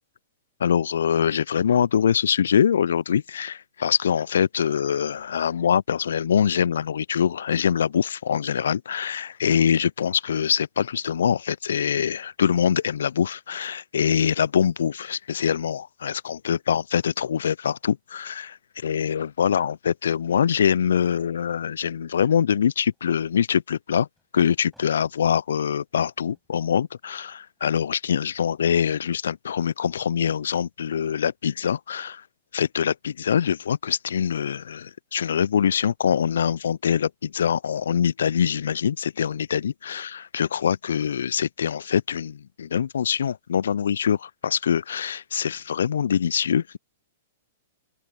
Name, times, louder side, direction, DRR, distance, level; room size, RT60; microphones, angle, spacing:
voice 1, 0.6-24.1 24.3-32.2 32.5-46.8, left 8 dB, 65° left, 0.8 m, -24 dB
sound 1, 22.9-23.5 24.2-25.0 25.7-25.9 26.2-28.5, equal, ahead, 7.7 m, -59 dB
open air
figure-of-eight pair, 105°, 0 cm